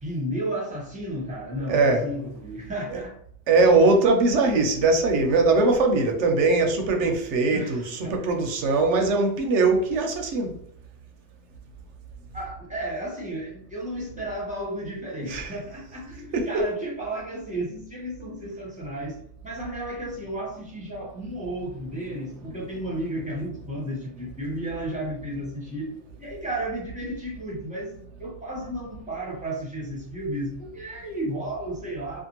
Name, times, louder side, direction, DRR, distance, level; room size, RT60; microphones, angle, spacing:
voice 1, 0.0-3.2 3.5-3.7 7.5-8.2 12.3-25.9 26.2-27.9 28.2-32.2, right 1 dB, 5° right, 0.8 m, -33 dB
voice 2, 1.6-2.0 2.9-3.0 3.5-10.5 15.3-15.6 16.3-16.6 22.4-22.5, right 3 dB, 70° right, 0.8 m, -21 dB
2.6 x 2.4 x 2.9 m
omnidirectional pair, 1.3 m